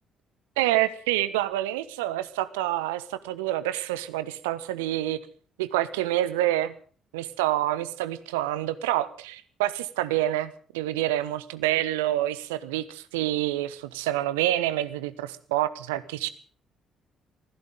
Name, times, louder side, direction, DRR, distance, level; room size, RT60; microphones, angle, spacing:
voice 1, 0.6-5.2 5.6-6.7 7.1-16.3, right 14 dB, 70° right, 15 dB, 1.0 m, -27 dB
23.5 x 16.0 x 3.8 m, 0.43 s
figure-of-eight pair, 45°, 0 cm